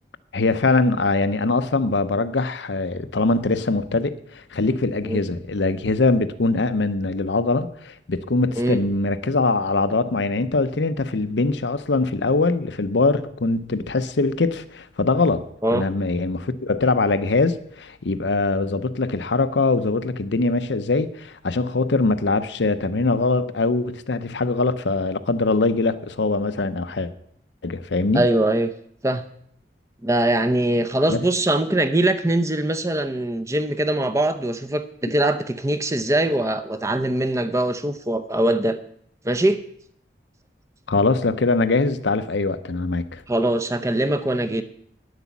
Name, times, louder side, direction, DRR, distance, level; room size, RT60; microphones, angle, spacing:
voice 1, 0.3-27.1 27.6-28.2 31.1-31.2 40.9-43.2, left 3 dB, 75° left, 0.7 m, -22 dB
voice 2, 28.1-28.7 29.0-29.2 30.0-38.8 39.2-39.6 43.3-44.6, right 1 dB, 15° right, 0.7 m, -22 dB
10.5 x 8.2 x 7.2 m
head